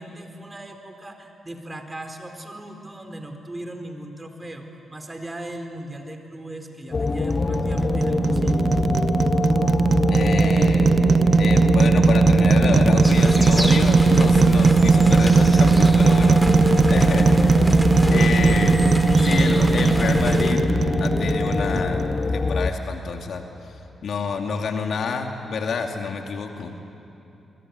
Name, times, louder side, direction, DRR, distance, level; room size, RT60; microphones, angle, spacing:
voice 1, 0.0-8.6, right 1 dB, 25° right, 5 dB, 4.3 m, -38 dB
sound 1, 6.9-22.7, left 4 dB, 40° left, 1.3 m, -24 dB
sound 2, 7.1-22.3, right 5 dB, 50° right, 0.7 m, -18 dB
voice 2, 10.1-10.9 11.4-16.4 16.9-17.5 18.1-18.8 19.1-20.6 21.0-22.1 22.3-23.4 24.0-26.7, left 5 dB, 65° left, 3 dB, 2.5 m, -28 dB
sound 3, 13.0-20.5, equal, ahead, 3.2 m, -29 dB
26.0 x 22.5 x 9.7 m, 2.8 s
supercardioid pair, 45°, 0 cm